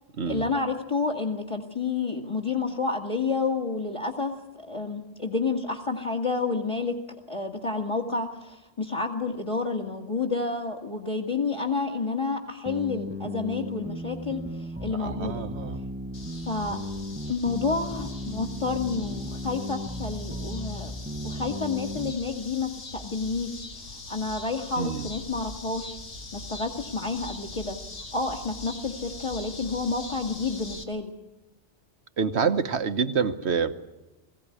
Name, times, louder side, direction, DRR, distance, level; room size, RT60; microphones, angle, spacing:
voice 1, 0.3-7.0 7.3-15.4 16.5-16.8 17.3-26.0 26.3-27.8 28.1-31.1, left 4 dB, 25° left, 2 dB, 1.8 m, -30 dB
sound 1, 12.7-22.1, equal, 10° right, 0.9 m, -35 dB
voice 2, 14.9-15.8 24.8-25.1 32.2-33.7, right 6 dB, 65° right, 10 dB, 1.4 m, -27 dB
sound 2, 16.1-30.8, left 2 dB, 80° left, 2.1 m, -42 dB
22.0 x 16.5 x 9.7 m, 1.0 s
omnidirectional pair, 1.2 m